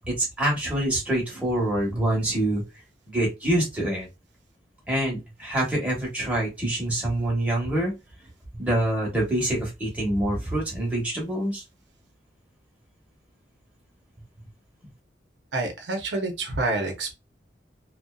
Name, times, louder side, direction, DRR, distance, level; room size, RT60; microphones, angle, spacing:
voice 1, 0.0-2.6 3.1-4.1 4.9-7.9 8.6-11.6, right 1 dB, 10° right, 1.0 m, -25 dB
voice 2, 15.5-17.1, right 2 dB, 90° right, 0.7 m, -28 dB
2.5 x 2.2 x 2.3 m
head